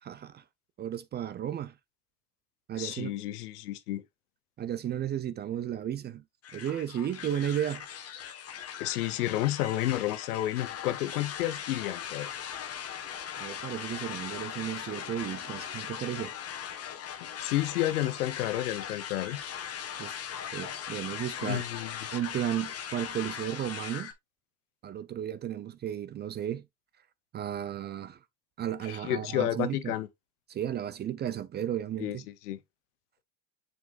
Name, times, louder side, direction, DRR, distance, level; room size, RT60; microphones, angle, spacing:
voice 1, 0.0-0.4 0.8-1.8 2.7-3.1 4.6-6.2 6.5-7.9 13.4-16.3 20.0-20.2 20.5-21.6 22.1-24.1 24.8-26.7 27.3-28.2 28.6-29.9 30.5-32.2, right 10 dB, 25° right, 0.4 m, -34 dB
voice 2, 2.7-4.0 8.8-12.3 17.4-19.4 21.4-21.9 28.8-30.1 32.0-32.6, left 14 dB, 90° left, 0.9 m, -31 dB
sound 1, 6.4-24.1, left 9 dB, 35° left, 1.3 m, -39 dB
7.1 x 6.0 x 2.4 m
supercardioid pair, 110°, 44 cm